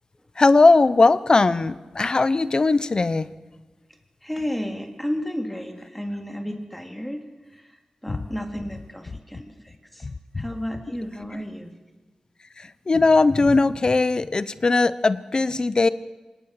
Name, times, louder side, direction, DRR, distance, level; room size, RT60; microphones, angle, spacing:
voice 1, 0.4-3.3 8.1-8.2 10.0-10.4 12.6-15.9, left 3 dB, 40° left, 15 dB, 0.8 m, -19 dB
voice 2, 4.2-7.2 7.5-7.8 8.0-10.1 10.4-11.7, equal, 5° left, 3 dB, 2.6 m, -32 dB
25.5 x 19.5 x 6.6 m, 1.2 s
wide cardioid pair, 95°, 2 cm